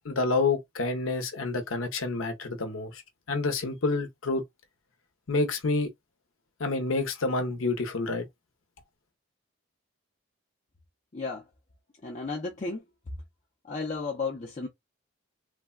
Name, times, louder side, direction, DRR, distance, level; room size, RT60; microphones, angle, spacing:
voice 1, 0.0-3.0 3.3-4.4 5.3-5.9 6.6-8.3, left 3 dB, 85° left, 0.7 m, -28 dB
voice 2, 11.1-11.4 12.0-12.8 13.7-14.7, left 4 dB, 35° left, 0.5 m, -33 dB
3.3 x 2.1 x 2.2 m
head